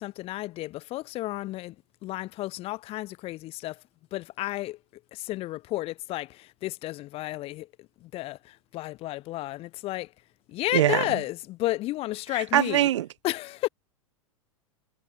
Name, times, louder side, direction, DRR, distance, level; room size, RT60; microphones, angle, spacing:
voice 1, 0.0-1.8 2.0-3.8 4.1-4.8 5.1-10.1 10.5-12.9 13.2-13.7, left 17 dB, 35° left, 2.5 m, -32 dB
voice 2, 10.7-11.0 12.5-13.1, right 12 dB, 60° right, 0.6 m, -21 dB
figure-of-eight pair, 95°, 17 cm